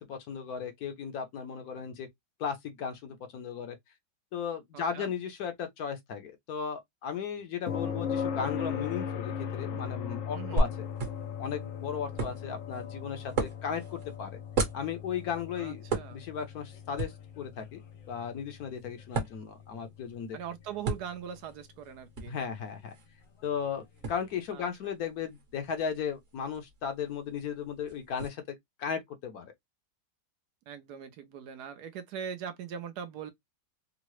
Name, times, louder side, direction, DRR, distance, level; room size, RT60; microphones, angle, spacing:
voice 1, 0.0-2.1 2.4-3.8 4.3-10.9 11.4-14.4 14.7-15.8 16.1-17.8 18.1-20.4 22.3-22.9 23.4-28.4 28.8-29.5, left 7 dB, 65° left, 1.1 m, -36 dB
voice 2, 4.7-5.1 10.3-10.7 15.5-16.2 20.3-22.4 24.5-24.7 30.7-33.3, right 8 dB, 75° right, 1.1 m, -41 dB
sound 1, 7.7-21.5 23.8-23.9, left 7 dB, 90° left, 1.3 m, -39 dB
sound 2, 10.6-28.3, right 3 dB, 50° right, 1.3 m, -38 dB
3.7 x 2.0 x 3.0 m
omnidirectional pair, 1.9 m